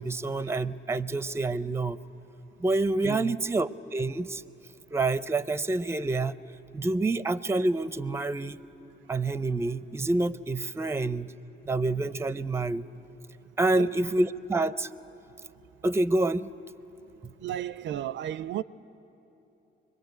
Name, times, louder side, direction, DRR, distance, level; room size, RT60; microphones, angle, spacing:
voice 1, 0.0-2.0 2.6-4.4 4.9-6.3 6.7-8.6 9.1-11.3 11.7-12.9 13.6-14.9 15.8-16.5 17.2-17.3, right 2 dB, 15° right, 0.5 m, -27 dB
voice 2, 3.0-3.4 13.7-13.9 17.4-18.6, right 11 dB, 70° right, 0.5 m, -33 dB
24.0 x 21.5 x 9.3 m
cardioid pair, 90°, 20 cm